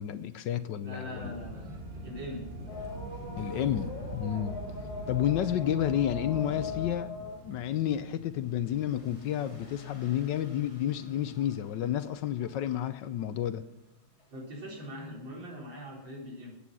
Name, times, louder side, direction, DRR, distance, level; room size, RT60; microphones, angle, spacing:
voice 1, 0.0-1.3 3.4-4.6 5.1-7.1 7.4-13.6, left 11 dB, 70° left, 13 dB, 1.2 m, -30 dB
voice 2, 0.8-1.7 2.0-2.4 14.3-16.5, left 1 dB, 70° right, -2 dB, 4.6 m, -41 dB
sound 1, 1.2-6.9, right 1 dB, 25° right, 1.8 m, -41 dB
sound 2, 2.7-12.5 13.0-13.1 14.2-14.3, left 3 dB, 50° left, 3.9 m, -43 dB
Wind, 6.0-12.6, left 1 dB, 10° left, 1.2 m, -55 dB
14.5 x 8.6 x 6.2 m, 0.88 s
omnidirectional pair, 2.2 m